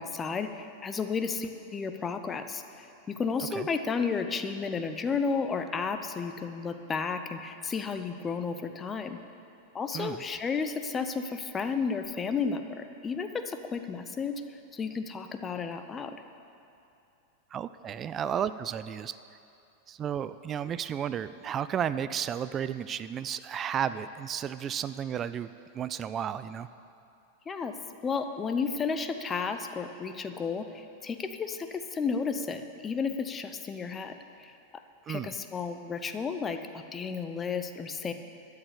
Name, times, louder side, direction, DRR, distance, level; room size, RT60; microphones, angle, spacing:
voice 1, 0.0-9.2 9.7-14.4 14.7-16.2 27.5-27.7 28.0-34.5 35.1-38.1, left 5 dB, 20° left, 8 dB, 0.8 m, -32 dB
voice 2, 17.5-19.2 19.9-25.5 25.7-26.7 35.1-35.3, right 8 dB, 25° right, 14 dB, 0.3 m, -33 dB
12.5 x 6.7 x 8.5 m, 2.7 s
figure-of-eight pair, 90°, 0 cm